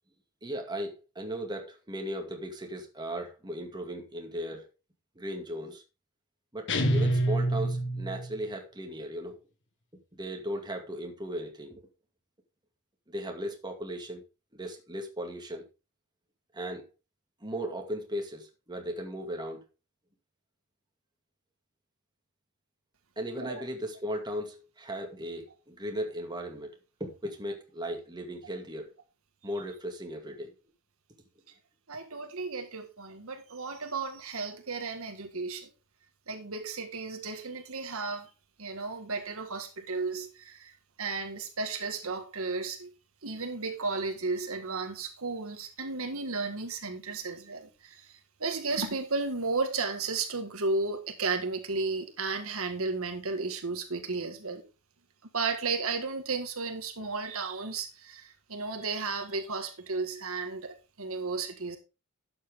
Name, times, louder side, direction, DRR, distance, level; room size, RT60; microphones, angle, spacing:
voice 1, 0.4-4.7 5.2-5.8 6.5-9.4 10.2-11.8 13.1-14.2 14.5-15.7 16.5-16.9 17.4-19.6 23.2-28.9 29.4-30.5, equal, 20° right, 2.2 m, -37 dB
sound 1, 6.7-8.4, right 1 dB, 55° left, 1.5 m, -27 dB
voice 2, 31.9-35.7 36.3-38.3 38.6-42.9 43.2-54.6 55.3-61.8, right 4 dB, 70° right, 1.7 m, -34 dB
12.0 x 7.8 x 3.6 m
head